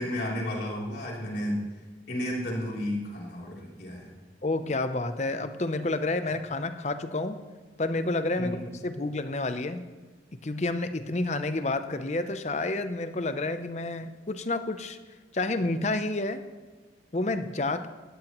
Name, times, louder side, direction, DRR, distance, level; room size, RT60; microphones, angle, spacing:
voice 1, 0.0-1.6 2.1-4.1 8.4-8.6, equal, 60° left, -3 dB, 3.4 m, -32 dB
voice 2, 4.4-7.4 7.8-8.6 8.8-9.9 10.4-15.0 15.3-16.4 17.1-17.9, left 2 dB, 40° left, 10 dB, 0.7 m, -29 dB
17.5 x 13.5 x 3.1 m, 1.4 s
head